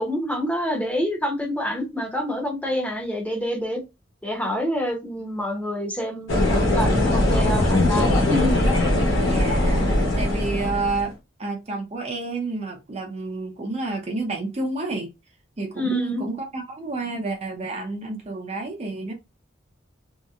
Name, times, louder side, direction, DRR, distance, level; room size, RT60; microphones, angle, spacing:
voice 1, 0.0-3.8 4.2-8.6 15.7-16.2, left 1 dB, 5° left, 0.7 m, -27 dB
sound 1, 6.3-11.1, left 1 dB, 85° left, 1.1 m, -20 dB
voice 2, 9.3-9.8 10.2-11.1 11.4-15.1 15.6-19.1, right 3 dB, 35° right, 0.5 m, -29 dB
2.8 x 2.1 x 2.4 m
head